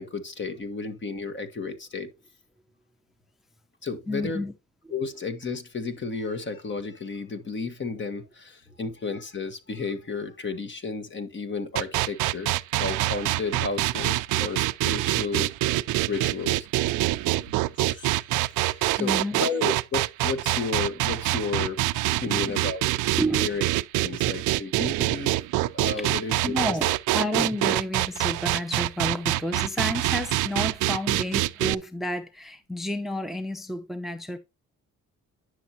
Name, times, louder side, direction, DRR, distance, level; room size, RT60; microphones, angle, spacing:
voice 1, 0.0-2.1 3.8-4.5 4.9-12.5 12.8-15.5 16.1-16.7 17.8-18.2 18.6-21.8 22.2-22.8 23.3-23.6 24.0-25.3 25.7-26.8, left 4 dB, 40° left, 1.5 m, -32 dB
voice 2, 4.1-4.5 4.9-5.0 19.0-19.4 22.2-22.6 23.1-23.7 26.0-34.4, equal, ahead, 0.7 m, -31 dB
sound 1, 11.8-31.8, right 18 dB, 90° right, 0.4 m, -25 dB
10.0 x 6.3 x 2.8 m
cardioid pair, 90°, 30 cm